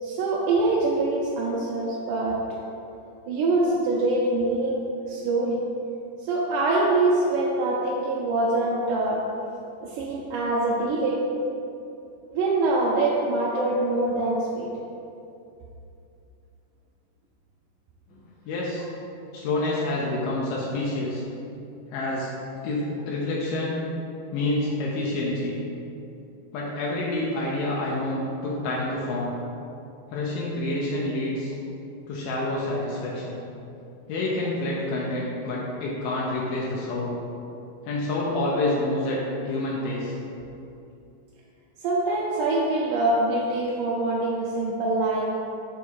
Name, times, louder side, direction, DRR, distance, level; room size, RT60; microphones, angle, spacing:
voice 1, 0.0-2.6 3.3-5.6 6.2-9.2 9.8-11.2 12.3-14.7 41.8-45.3, right 2 dB, 80° right, -5 dB, 2.0 m, -24 dB
voice 2, 18.1-18.8 19.3-21.2 21.9-22.3 22.6-23.8 24.3-25.5 26.5-29.3 30.1-31.5 32.1-33.4 34.1-37.2 37.8-39.2 39.4-40.2, left 2 dB, 85° left, -4 dB, 2.3 m, -28 dB
6.4 x 3.5 x 4.5 m, 2.7 s
omnidirectional pair, 3.8 m